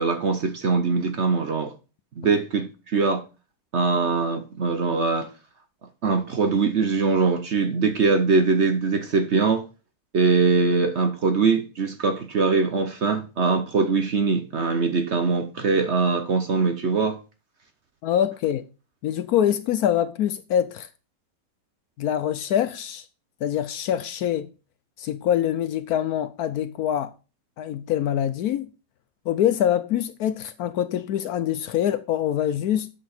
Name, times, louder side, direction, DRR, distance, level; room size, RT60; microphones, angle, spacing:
voice 1, 0.0-1.7 2.2-3.2 3.7-5.3 6.0-9.6 10.1-17.2, right 4 dB, 50° right, 0.9 m, -22 dB
voice 2, 18.0-18.6 19.0-20.9 22.0-23.1 23.4-24.5 25.0-27.1 27.6-28.7 29.3-32.9, left 10 dB, 70° left, 1.0 m, -24 dB
8.5 x 5.9 x 4.3 m
omnidirectional pair, 1.9 m